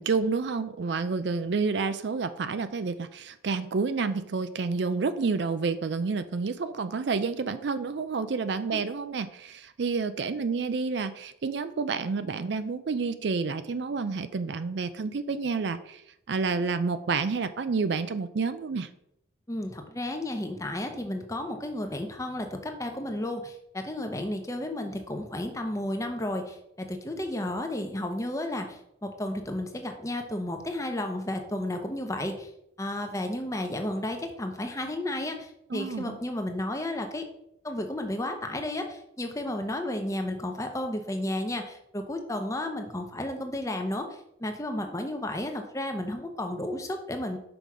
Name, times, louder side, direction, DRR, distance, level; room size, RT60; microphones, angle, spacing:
voice 1, 0.0-16.0 16.3-18.9 35.7-36.2, right 4 dB, 60° right, 12 dB, 0.4 m, -29 dB
voice 2, 19.5-32.5 32.8-37.2 37.6-44.1 44.4-47.4, left 1 dB, 15° left, 5 dB, 0.7 m, -32 dB
5.9 x 5.2 x 4.8 m, 0.78 s
head